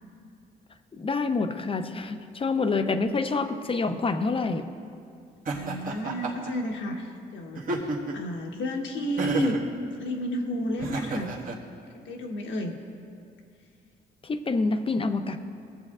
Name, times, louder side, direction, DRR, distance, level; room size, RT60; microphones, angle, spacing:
voice 1, 0.9-4.7 14.2-15.4, left 3 dB, 30° left, 8 dB, 0.6 m, -27 dB
voice 2, 5.5-9.6 10.0-11.3 11.9-12.8, equal, 70° left, 1 dB, 1.2 m, -31 dB
Laughter, 5.5-6.5 7.6-8.3 9.2-9.7 10.8-11.6, right 3 dB, 45° right, 1.3 m, -31 dB
21.5 x 7.5 x 2.5 m, 2.4 s
cardioid pair, 90°, 20 cm